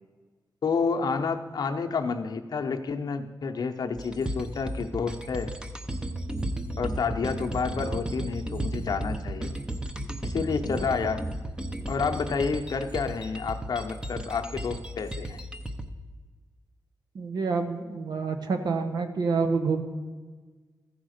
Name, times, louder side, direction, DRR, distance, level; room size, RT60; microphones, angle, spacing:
voice 1, 0.6-5.5 6.8-9.5 10.2-11.2 11.9-15.4, left 5 dB, 65° left, 5 dB, 0.7 m, -29 dB
sound 1, 4.0-15.9, right 1 dB, 10° right, 0.7 m, -34 dB
voice 2, 17.1-19.8, right 4 dB, 70° right, 7 dB, 0.9 m, -27 dB
14.5 x 5.0 x 6.4 m, 1.4 s
wide cardioid pair, 95°, 7 cm